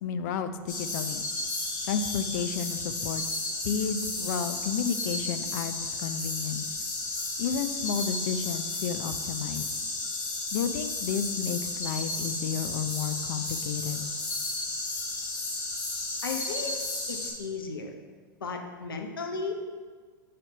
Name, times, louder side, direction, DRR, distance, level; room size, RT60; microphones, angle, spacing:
voice 1, 0.0-1.2 1.9-3.2 3.6-6.7 7.4-9.9 10.5-14.1, left 7 dB, 55° left, 10 dB, 0.5 m, -32 dB
sound 1, 0.7-17.3, left 2 dB, 40° left, 1.6 m, -33 dB
voice 2, 16.2-16.8 17.1-17.9 18.4-19.8, left 4 dB, 80° left, 3 dB, 0.8 m, -35 dB
5.6 x 3.4 x 5.5 m, 1.5 s
hypercardioid pair, 100°, 12 cm